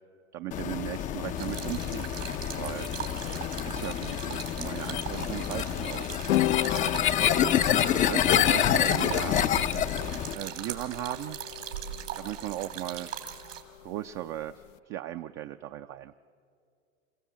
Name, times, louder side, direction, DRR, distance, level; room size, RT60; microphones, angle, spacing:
voice 1, 0.3-2.1 2.6-2.9 3.7-6.1 7.4-7.5 8.0-9.4 10.3-11.4 12.2-13.1 13.8-14.5 14.9-16.2, right 14 dB, 35° right, 7 dB, 0.5 m, -37 dB
sound 1, 0.5-10.3, left 10 dB, 20° left, 0.5 m, -27 dB
sound 2, 1.3-13.6, right 10 dB, 80° right, 3.4 m, -40 dB
sound 3, 6.3-14.7, left 14 dB, 75° left, 0.6 m, -35 dB
27.5 x 16.0 x 7.4 m, 2.4 s
hypercardioid pair, 115°, 37 cm